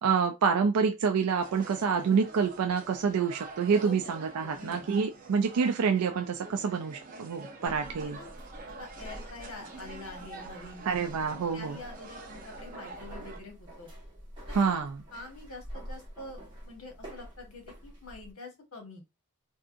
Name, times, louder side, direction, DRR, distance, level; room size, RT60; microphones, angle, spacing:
voice 1, 0.0-8.2 10.9-11.8 14.5-15.0, right 6 dB, 85° right, 0.4 m, -27 dB
sound 1, 1.4-13.4, right 3 dB, 40° right, 0.7 m, -47 dB
voice 2, 3.8-4.9 8.0-8.3 8.8-10.8 11.3-13.9 14.5-14.8 15.1-19.0, left 2 dB, 70° left, 1.2 m, -46 dB
sound 2, 7.7-18.3, equal, 20° right, 1.3 m, -47 dB
3.5 x 2.7 x 2.5 m
head